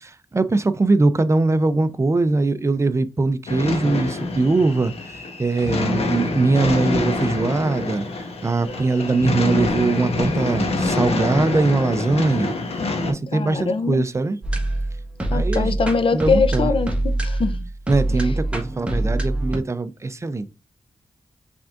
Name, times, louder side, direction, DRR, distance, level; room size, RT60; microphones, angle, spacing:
voice 1, 0.0-14.4 15.3-15.8 16.1-16.7 17.9-20.5, right 3 dB, 30° right, 0.5 m, -21 dB
sound 1, 3.5-13.1, left 2 dB, 85° left, 1.1 m, -26 dB
sound 2, 8.6-18.4, left 1 dB, 10° left, 1.9 m, -51 dB
voice 2, 13.3-14.1 15.3-17.7, left 4 dB, 60° left, 0.6 m, -22 dB
sound 3, 14.4-19.6, right 1 dB, 10° right, 1.4 m, -24 dB
6.0 x 3.5 x 2.5 m
wide cardioid pair, 85°, 10 cm